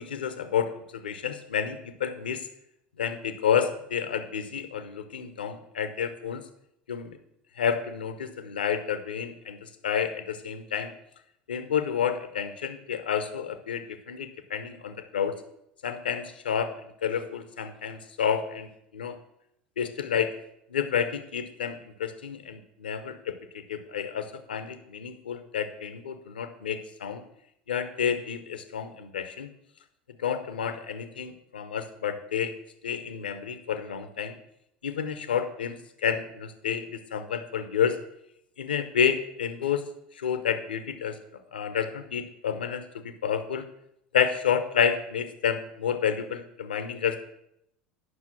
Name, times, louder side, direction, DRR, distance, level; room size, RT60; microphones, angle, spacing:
voice 1, 0.0-2.5 3.0-6.4 6.9-7.2 7.6-10.9 11.5-15.3 15.8-16.7 17.0-19.2 19.8-20.3 20.7-27.2 27.7-29.5 30.2-32.5 32.8-34.4 34.8-38.0 38.6-39.8 40.1-41.2 41.5-42.8 43.2-43.7 44.1-47.2, left 8 dB, 80° left, 9 dB, 0.8 m, -30 dB
9.7 x 5.8 x 6.0 m, 0.76 s
figure-of-eight pair, 75°, 5 cm